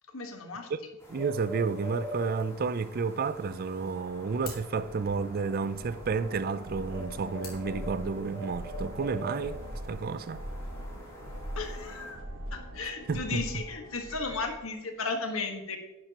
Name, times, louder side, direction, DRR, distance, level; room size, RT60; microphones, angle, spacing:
voice 1, 0.1-0.7 11.5-12.2 12.5-15.8, left 4 dB, 85° left, 1.5 m, -35 dB
sound 1, 1.0-12.1, equal, 15° left, 3.1 m, -44 dB
voice 2, 1.1-9.6 9.9-10.4 12.8-13.4, right 4 dB, 45° right, 0.4 m, -31 dB
sound 2, 3.6-8.7, left 5 dB, 50° left, 2.6 m, -51 dB
sound 3, 4.2-14.7, right 1 dB, 80° right, 1.4 m, -42 dB
10.5 x 10.5 x 2.9 m
head